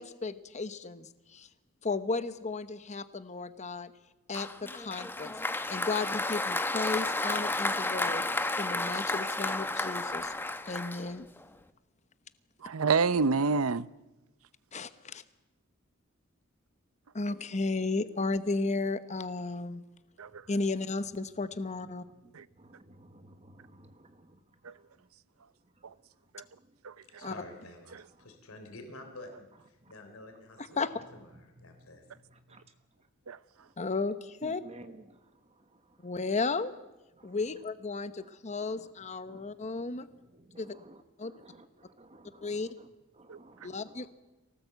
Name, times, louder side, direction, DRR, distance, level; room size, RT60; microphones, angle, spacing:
voice 1, 0.0-1.5 1.8-3.9 4.3-5.3 5.7-8.2 8.6-10.3 10.6-11.3 14.7-14.9 17.1-19.8 20.5-22.0 27.2-27.3 30.8-30.9 33.8-34.6 36.0-36.7 37.2-40.1 40.6-40.7 41.2-41.3 42.4-42.7 43.6-44.1, left 3 dB, 35° left, 0.9 m, -34 dB
Applause, 4.3-11.5, left 2 dB, 10° left, 0.8 m, -32 dB
voice 2, 12.6-13.9 20.2-20.4 22.3-22.4 24.6-24.7 26.3-26.4 26.8-26.9 33.3-33.4 43.3-43.4, right 4 dB, 80° right, 0.7 m, -27 dB
voice 3, 22.2-24.8 25.7-25.9 26.6-26.7 28.2-28.3 29.8-29.9 31.6-31.8 32.1-32.7 33.6-33.7 34.4-36.1 37.2-37.4 38.2-38.3 38.7-38.9 39.3-42.9 43.1-44.1, right 1 dB, 30° right, 1.2 m, -55 dB
voice 4, 27.2-30.8 31.1-32.0, left 2 dB, 90° left, 3.5 m, -49 dB
24.0 x 18.0 x 8.0 m
head